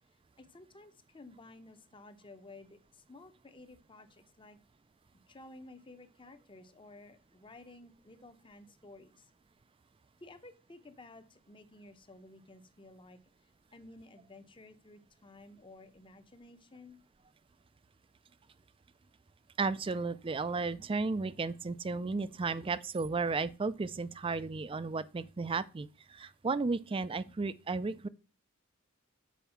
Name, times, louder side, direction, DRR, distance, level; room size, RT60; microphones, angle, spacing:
voice 1, 0.4-4.6 5.3-9.3 10.2-13.2 13.7-17.0, left 2 dB, 25° left, 0.8 m, -54 dB
voice 2, 19.6-28.1, right 4 dB, 25° right, 0.4 m, -34 dB
7.2 x 4.7 x 5.7 m
head